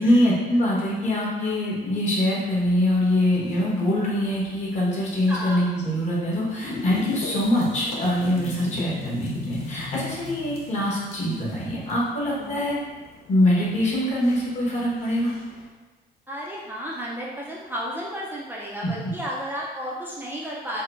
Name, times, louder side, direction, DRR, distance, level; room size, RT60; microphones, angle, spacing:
voice 1, 0.0-12.8 13.3-15.3, left 1 dB, 45° left, -5 dB, 1.1 m, -23 dB
sound 1, 2.5-15.7, left 3 dB, 65° left, 0.7 m, -40 dB
voice 2, 5.3-5.6 7.3-7.4 8.9-9.1 10.7-10.8 12.3-12.6 16.3-20.8, equal, 10° right, -5 dB, 0.4 m, -33 dB
4.4 x 2.1 x 2.4 m, 1.3 s
cardioid pair, 110°, 17 cm